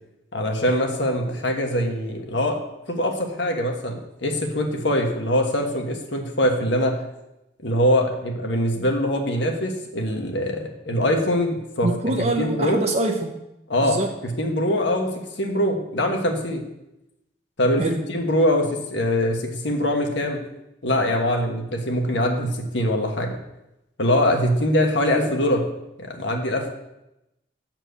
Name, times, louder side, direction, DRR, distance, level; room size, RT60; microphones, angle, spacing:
voice 1, 0.3-2.6 2.9-7.0 7.6-11.9 12.4-12.8 13.7-16.6 17.6-17.8 18.1-20.4 20.8-23.4 24.0-25.7 26.0-26.7, left 1 dB, 70° left, 2 dB, 1.3 m, -23 dB
voice 2, 11.8-13.4 13.8-14.1 17.8-18.0, right 2 dB, 35° right, 3 dB, 0.7 m, -24 dB
7.9 x 4.5 x 6.8 m, 0.89 s
head